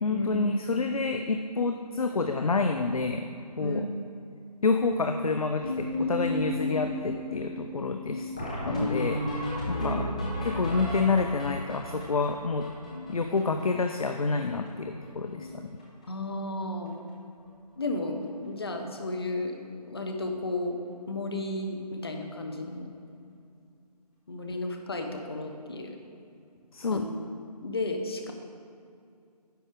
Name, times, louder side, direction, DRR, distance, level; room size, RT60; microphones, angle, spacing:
voice 1, 0.0-3.3 3.6-3.9 4.6-8.3 8.6-10.0 10.4-12.7 13.1-15.5 26.7-27.1, left 4 dB, 60° left, 6 dB, 0.5 m, -28 dB
sound 1, 5.6-13.8 14.1-14.2 14.4-14.7 15.0-15.5 15.8-16.0 16.9-17.0 17.4-17.5 17.8-17.9 20.2-20.3 22.6-22.7, left 1 dB, 10° left, 0.6 m, -33 dB
voice 2, 9.8-10.2 16.1-17.0 17.8-19.6 19.9-20.8 21.1-22.9 24.3-26.0 26.9-27.1 27.6-28.3, left 2 dB, 35° left, 4 dB, 0.8 m, -33 dB
10.0 x 6.9 x 3.7 m, 2.5 s
figure-of-eight pair, 160°, 21 cm